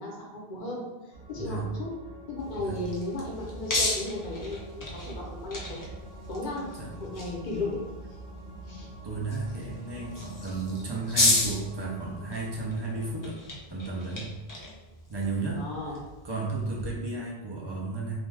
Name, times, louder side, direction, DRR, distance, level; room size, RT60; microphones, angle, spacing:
voice 1, 0.0-1.9 2.3-5.8 6.3-7.9 8.6-8.9 15.6-16.0, left 2 dB, 50° left, -2 dB, 0.8 m, -35 dB
sound 1, 1.1-13.2, right 1 dB, 55° right, 0.8 m, -45 dB
sound 2, 2.4-16.9, left 2 dB, 30° left, 0.4 m, -34 dB
voice 2, 9.0-13.4 13.7-14.3 15.1-15.6 16.2-18.1, right 3 dB, 35° right, -3 dB, 0.4 m, -33 dB
2.5 x 2.2 x 3.2 m, 1.1 s
omnidirectional pair, 1.0 m